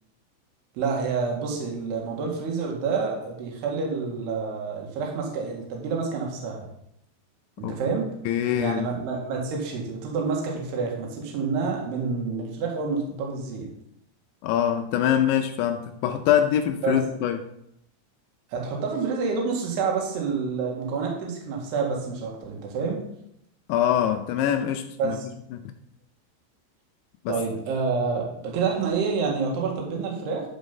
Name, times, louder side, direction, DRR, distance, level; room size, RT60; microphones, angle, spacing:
voice 1, 0.8-6.7 7.6-8.1 8.5-13.7 16.8-17.0 18.5-23.0 25.0-25.3 27.3-30.4, right 5 dB, 65° right, 0 dB, 3.6 m, -28 dB
voice 2, 8.3-8.9 14.4-17.4 23.7-25.2 25.5-25.6 27.3-27.4, left 10 dB, 80° left, 7 dB, 2.8 m, -24 dB
11.5 x 5.1 x 5.3 m, 0.76 s
omnidirectional pair, 5.5 m